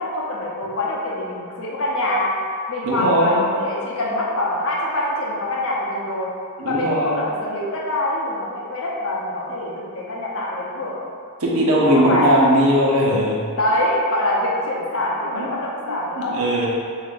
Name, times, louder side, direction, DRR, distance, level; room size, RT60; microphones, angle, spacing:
voice 1, 0.0-2.3 2.7-6.3 6.6-10.9 11.9-12.3 13.5-16.4, left 1 dB, 65° left, -5 dB, 0.9 m, -24 dB
voice 2, 2.8-3.5 6.6-7.2 11.4-13.5 15.3-15.5 15.9-16.7, equal, 85° right, -4 dB, 0.9 m, -19 dB
7.0 x 2.7 x 2.6 m, 2.3 s
head